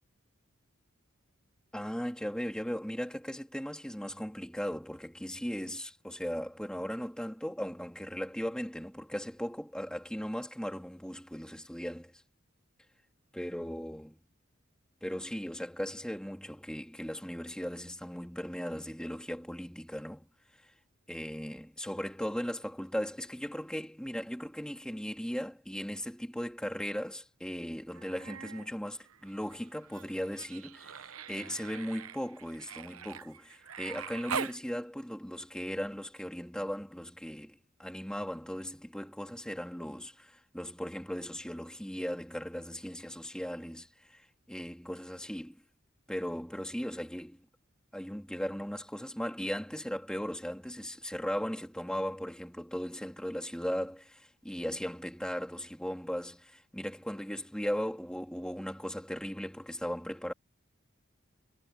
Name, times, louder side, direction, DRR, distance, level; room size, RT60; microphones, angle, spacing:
voice 1, 1.7-12.2 13.3-14.2 15.0-20.3 21.1-45.6 46.1-47.4 47.9-60.3, equal, 5° left, 3.2 m, -37 dB
Human voice, 27.9-28.7 29.0-34.6 36.2-36.3, right 6 dB, 85° right, 1.0 m, -42 dB
head